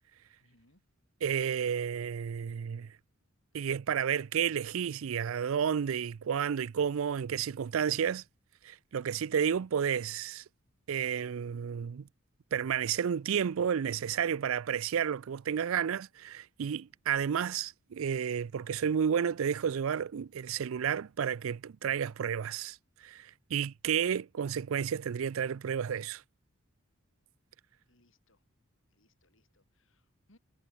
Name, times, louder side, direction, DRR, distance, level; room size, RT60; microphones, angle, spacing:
voice 1, 0.4-0.8 27.9-28.4 28.9-30.4, left 1 dB, 60° left, 4.3 m, -68 dB
voice 2, 1.2-3.0 3.5-8.2 8.6-10.4 10.9-12.1 12.5-26.2, right 8 dB, 70° right, 0.4 m, -31 dB
head